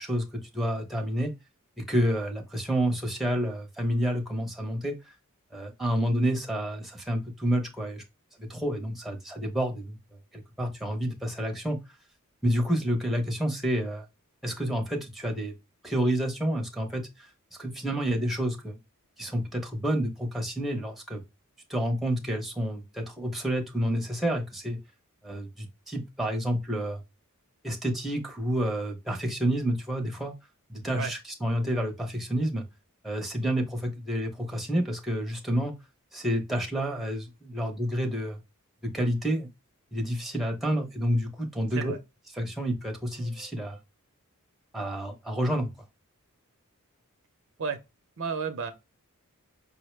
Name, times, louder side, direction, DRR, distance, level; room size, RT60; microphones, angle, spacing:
voice 1, 0.0-1.3 1.8-4.9 5.5-8.0 8.4-10.0 10.3-11.8 12.4-14.1 14.4-15.5 15.8-17.1 17.6-18.8 19.2-21.2 21.7-24.8 25.2-27.0 27.6-30.3 30.7-32.6 33.0-35.7 36.1-38.4 38.8-39.5 39.9-41.9 42.3-43.8 44.7-45.7, equal, ahead, 0.8 m, -29 dB
voice 2, 48.2-48.7, right 5 dB, 60° right, 0.6 m, -31 dB
5.3 x 2.0 x 3.1 m
head